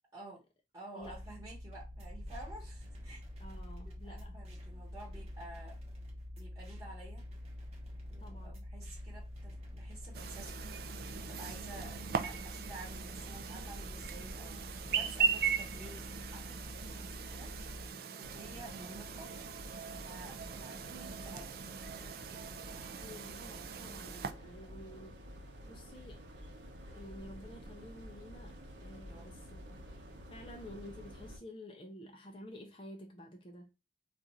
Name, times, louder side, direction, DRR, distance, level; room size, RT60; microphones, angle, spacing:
voice 1, 0.1-0.4 0.7-3.2 3.8-5.7 6.4-7.2 8.1-10.8 11.3-14.6 14.9-16.1 16.3-17.5 18.2-19.3 20.0-21.5 29.1-29.3, right 2 dB, 20° right, 1.1 m, -51 dB
sound 1, 1.0-17.9, left 1 dB, 35° right, 0.8 m, -46 dB
voice 2, 3.4-4.4 8.2-8.6 23.0-25.2 25.7-26.3 26.9-29.8 30.3-33.7, left 1 dB, 30° left, 0.5 m, -51 dB
Chirp tweet, 10.1-24.3, right 6 dB, 55° right, 0.4 m, -39 dB
sound 2, 18.2-31.4, equal, 90° right, 0.8 m, -50 dB
2.5 x 2.4 x 4.1 m
head